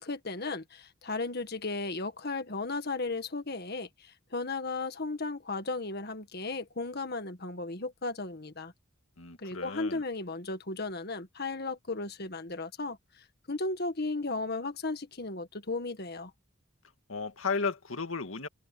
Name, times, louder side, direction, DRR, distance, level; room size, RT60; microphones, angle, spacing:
voice 1, 0.0-8.7 9.4-16.3, left 3 dB, 50° left, 1.8 m, -35 dB
voice 2, 9.2-10.0 17.1-18.5, left 4 dB, 85° left, 2.0 m, -34 dB
open air
head